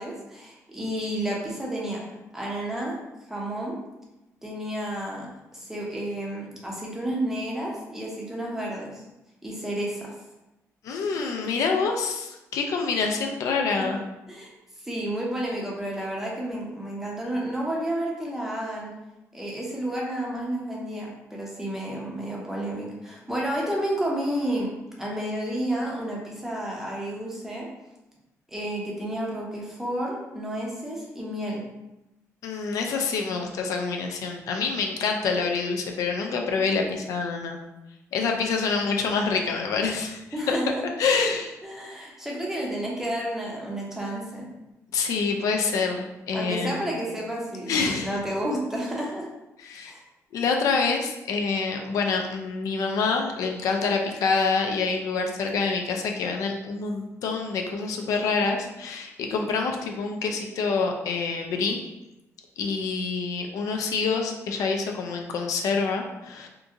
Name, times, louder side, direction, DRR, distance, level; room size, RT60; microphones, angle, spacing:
voice 1, 0.0-2.0 2.3-3.0 3.3-3.8 4.4-5.3 5.5-9.0 9.4-10.1 14.3-14.5 14.8-18.9 19.3-24.7 25.0-27.7 28.5-31.6 40.3-40.8 41.6-44.5 46.3-49.3 49.8-50.0, right 1 dB, 5° right, -3 dB, 0.6 m, -31 dB
voice 2, 10.8-14.0 32.4-37.6 38.1-40.6 41.0-41.5 44.9-46.8 47.7-48.1 49.6-49.9 50.3-61.8 62.6-66.5, left 4 dB, 75° left, 2 dB, 0.4 m, -26 dB
2.7 x 2.5 x 2.4 m, 0.98 s
cardioid pair, 145°, 6 cm